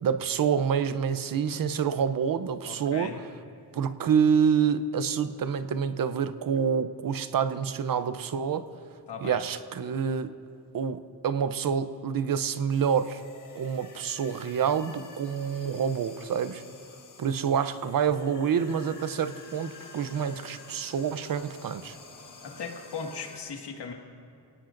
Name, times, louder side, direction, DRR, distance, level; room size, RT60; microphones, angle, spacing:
voice 1, 0.0-3.1 3.7-8.7 9.2-10.3 10.7-13.2 13.5-16.6 17.2-22.0, right 7 dB, 55° right, 11 dB, 0.7 m, -27 dB
voice 2, 2.6-3.2 9.1-9.4 22.4-23.9, left 5 dB, 90° left, 2 dB, 1.9 m, -38 dB
sound 1, 12.7-23.4, left 4 dB, 50° left, 1.7 m, -50 dB
27.0 x 18.0 x 2.6 m, 2.6 s
wide cardioid pair, 165°, 40 cm